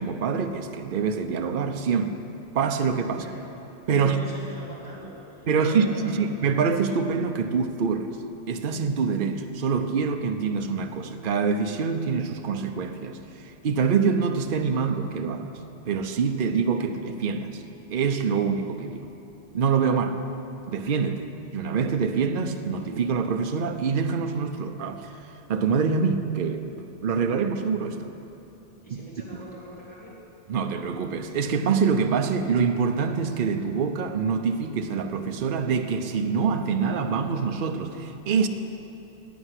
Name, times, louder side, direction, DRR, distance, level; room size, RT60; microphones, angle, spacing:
voice 1, 0.0-2.2 2.5-3.2 3.9-4.2 5.5-8.1 8.5-15.5 15.9-17.6 17.9-19.1 19.5-20.2 20.7-25.1 25.5-26.7 27.0-28.1 28.9-29.0 30.5-38.5, right 5 dB, 50° right, 6 dB, 0.9 m, -25 dB
voice 2, 3.9-6.3 28.8-30.1, equal, 5° left, -9 dB, 3.6 m, -43 dB
11.5 x 9.0 x 9.9 m, 3.0 s
omnidirectional pair, 1.2 m